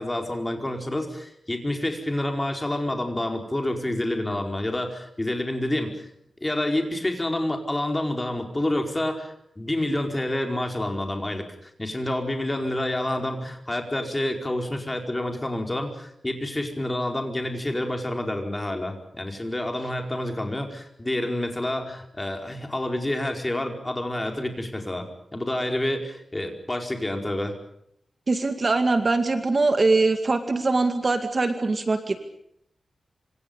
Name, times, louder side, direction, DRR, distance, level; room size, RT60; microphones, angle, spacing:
voice 1, 0.0-6.1 6.4-25.0 25.3-27.5, left 1 dB, 15° left, 4 dB, 4.7 m, -28 dB
voice 2, 28.3-32.2, right 3 dB, 35° right, 7 dB, 2.2 m, -22 dB
27.0 x 27.0 x 5.4 m, 0.75 s
wide cardioid pair, 145°, 0 cm